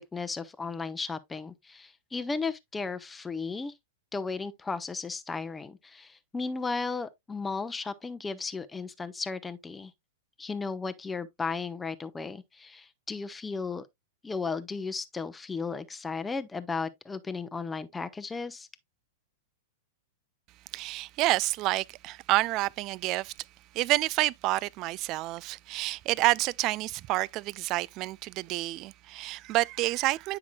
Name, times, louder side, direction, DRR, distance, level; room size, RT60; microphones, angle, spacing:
voice 1, 0.1-3.7 4.1-9.9 10.4-13.9 14.2-18.7, left 4 dB, 10° left, 0.8 m, -35 dB
voice 2, 20.7-23.3 23.7-30.4, right 18 dB, 40° right, 0.4 m, -28 dB
9.5 x 5.8 x 2.3 m
figure-of-eight pair, 100°, 0 cm